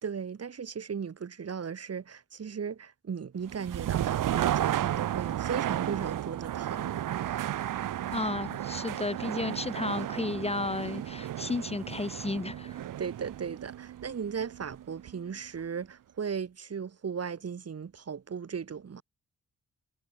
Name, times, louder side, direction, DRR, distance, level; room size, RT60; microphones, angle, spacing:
voice 1, 0.0-7.4 13.0-19.0, right 6 dB, 50° right, 1.6 m, -37 dB
sound 1, 3.4-15.3, right 12 dB, 85° right, 0.9 m, -33 dB
voice 2, 8.1-12.8, left 2 dB, 20° left, 1.2 m, -33 dB
cardioid pair, 75°, 31 cm